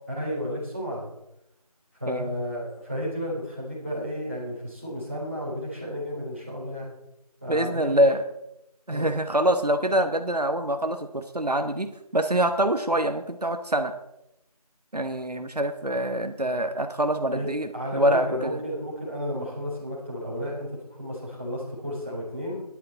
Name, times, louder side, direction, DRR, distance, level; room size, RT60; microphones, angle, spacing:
voice 1, 0.2-1.1 2.0-6.9 7.4-8.0 8.9-9.1 17.3-17.5 17.7-22.6, equal, 20° right, -7 dB, 3.1 m, -32 dB
voice 2, 7.5-8.2 8.9-13.9 14.9-18.6, right 1 dB, 80° right, 7 dB, 1.1 m, -25 dB
14.5 x 11.0 x 4.2 m, 0.85 s
figure-of-eight pair, 180°, 20 cm